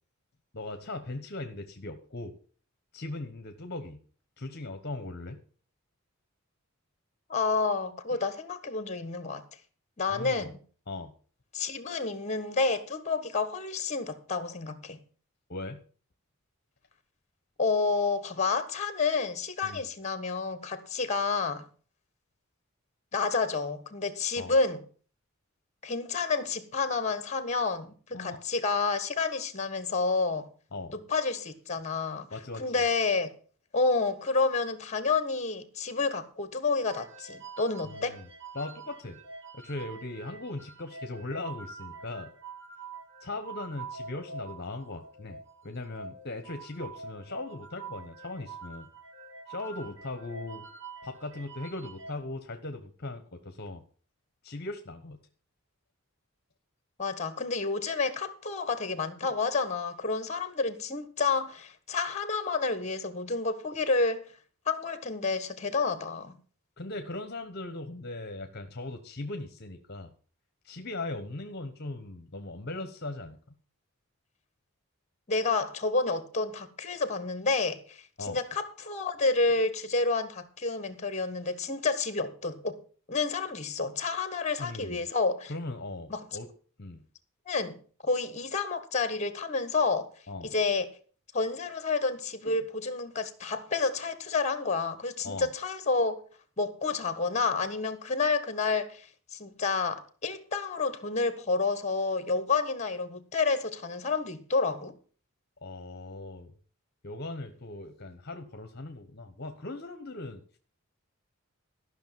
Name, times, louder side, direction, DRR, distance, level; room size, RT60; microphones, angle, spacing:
voice 1, 0.5-2.3 2.9-4.0 4.4-5.4 8.1-8.2 10.1-10.5 10.9-11.1 15.5-15.8 19.6-19.8 24.4-24.5 28.1-28.4 30.7-30.9 32.3-32.8 37.8-38.3 38.5-39.2 39.5-42.3 43.2-48.9 49.5-50.6 51.0-53.8 54.4-55.2 66.8-70.1 70.6-73.4 78.2-78.4 84.6-85.0 85.5-86.5 86.8-87.0 90.3-90.5 92.4-92.6 95.2-95.5 105.6-106.5 107.0-110.6, left 2 dB, 50° left, 1.1 m, -39 dB
voice 2, 7.3-9.4 10.0-10.6 11.5-15.0 17.6-21.6 23.1-24.8 25.8-30.5 30.9-32.3 32.6-33.3 33.7-38.2 57.0-64.3 64.7-66.4 75.3-82.8 83.1-85.5 86.1-86.2 87.5-87.8 88.0-90.1 90.4-90.9 91.3-96.1 96.6-105.0, left 4 dB, 35° left, 1.5 m, -29 dB
sound 1, 36.9-52.2, right 4 dB, 65° right, 2.2 m, -46 dB
13.5 x 6.1 x 7.4 m
head